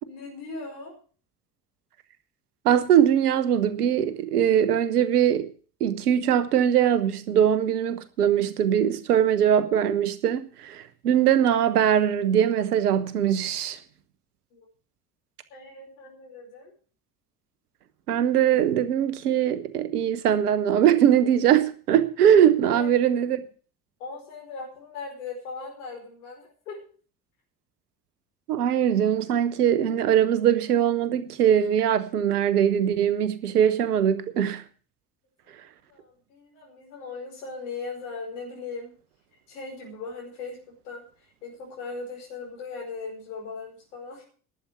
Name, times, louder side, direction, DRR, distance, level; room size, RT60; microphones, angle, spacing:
voice 1, 0.0-1.0 14.5-14.7 15.5-16.7 22.7-22.9 24.0-26.8 35.6-38.9 39.5-41.1 41.4-44.2, left 4 dB, 70° left, 5.0 m, -39 dB
voice 2, 2.6-5.5 5.8-13.8 18.1-23.4 28.5-34.6, right 9 dB, 75° right, 1.1 m, -21 dB
11.5 x 7.8 x 8.0 m
figure-of-eight pair, 50°, 46 cm